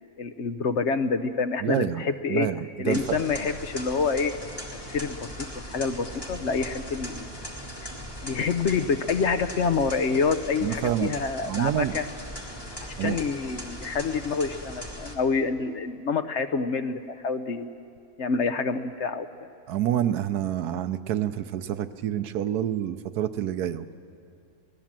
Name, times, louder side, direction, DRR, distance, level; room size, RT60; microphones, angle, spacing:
voice 1, 0.2-2.5 2.8-4.3 4.9-5.2 5.6-7.3 8.2-12.0 12.8-17.7 18.2-19.3, left 5 dB, 55° left, 9 dB, 1.0 m, -27 dB
voice 2, 1.6-3.3 10.6-11.2 11.5-11.9 13.0-13.2 19.7-23.9, right 11 dB, 90° right, 11 dB, 1.3 m, -28 dB
sound 1, 2.9-15.1, equal, 15° left, 2.2 m, -39 dB
28.5 x 17.5 x 7.5 m, 2.4 s
omnidirectional pair, 1.6 m